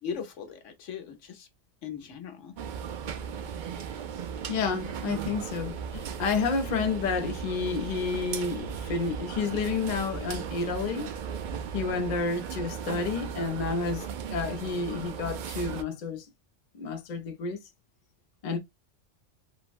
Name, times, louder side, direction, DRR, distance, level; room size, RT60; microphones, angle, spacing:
voice 1, 0.0-1.5 1.8-2.6 3.3-3.5 11.9-12.1, left 7 dB, 75° left, 1.1 m, -39 dB
sound 1, 2.6-15.8, right 7 dB, 65° right, 0.4 m, -36 dB
voice 2, 4.5-11.1 11.7-16.2 16.8-17.6 18.4-18.6, left 4 dB, 45° left, 0.7 m, -30 dB
3.5 x 2.1 x 2.4 m
omnidirectional pair, 1.3 m